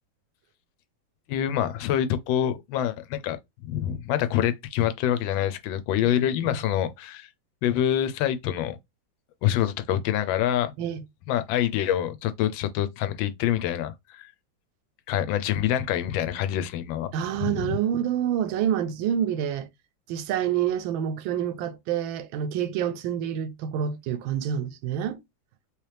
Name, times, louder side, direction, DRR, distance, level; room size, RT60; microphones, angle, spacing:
voice 1, 1.3-3.4 3.6-7.3 7.6-8.8 9.4-10.7 11.3-14.3 15.1-17.1 17.4-17.8, left 11 dB, 80° left, 1.3 m, -26 dB
voice 2, 6.0-6.6 10.8-11.0 17.1-19.7 20.1-25.2, right 9 dB, 85° right, 1.4 m, -28 dB
3.2 x 3.0 x 3.2 m
omnidirectional pair, 2.1 m